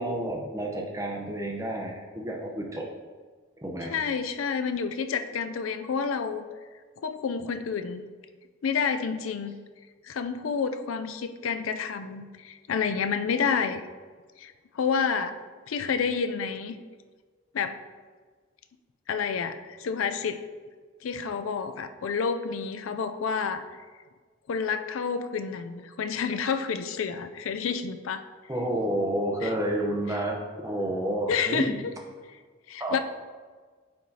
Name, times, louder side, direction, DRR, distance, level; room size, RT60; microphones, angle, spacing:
voice 1, 0.0-2.9 3.6-3.9 28.5-30.4 30.6-31.8 32.8-33.0, right 1 dB, 15° right, 0 dB, 0.7 m, -30 dB
voice 2, 3.9-6.5 7.0-8.0 8.6-9.5 10.0-13.8 14.4-15.3 15.7-16.8 17.5-17.8 19.1-20.4 21.0-23.6 24.5-28.3 29.4-29.5 31.3-31.9 32.7-33.0, left 6 dB, 90° left, 9 dB, 0.4 m, -29 dB
9.2 x 4.7 x 2.8 m, 1.5 s
head